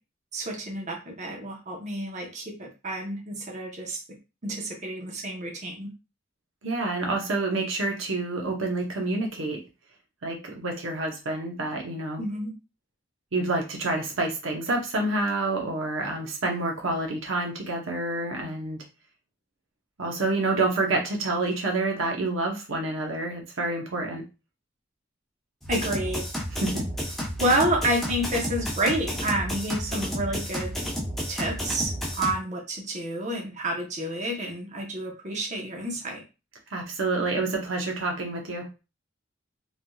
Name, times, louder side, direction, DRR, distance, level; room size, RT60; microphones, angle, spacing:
voice 1, 0.3-4.0 4.4-5.9 12.2-12.5 25.7-26.2 27.4-30.7 31.3-36.2, right 1 dB, 40° right, 0 dB, 0.8 m, -29 dB
voice 2, 6.6-9.6 10.2-12.2 13.3-18.8 20.0-24.2 26.5-27.2 36.7-38.7, right 2 dB, 85° right, 2 dB, 0.8 m, -28 dB
sound 1, 25.6-32.3, equal, ahead, 0.8 m, -31 dB
3.3 x 2.7 x 2.3 m, 0.29 s
head